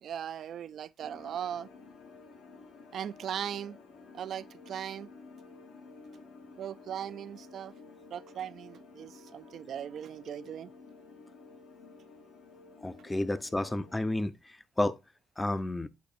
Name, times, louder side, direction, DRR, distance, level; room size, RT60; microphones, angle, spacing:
voice 1, 0.0-1.7 2.9-3.8 4.1-5.1 6.6-7.7 8.1-10.7, right 9 dB, 65° right, 0.4 m, -38 dB
sound 1, 1.0-14.0, left 4 dB, 85° left, 1.4 m, -52 dB
voice 2, 12.8-14.3 14.8-15.0 15.4-15.9, left 1 dB, 15° left, 0.5 m, -30 dB
8.2 x 3.1 x 4.2 m
cardioid pair, 90°, 0 cm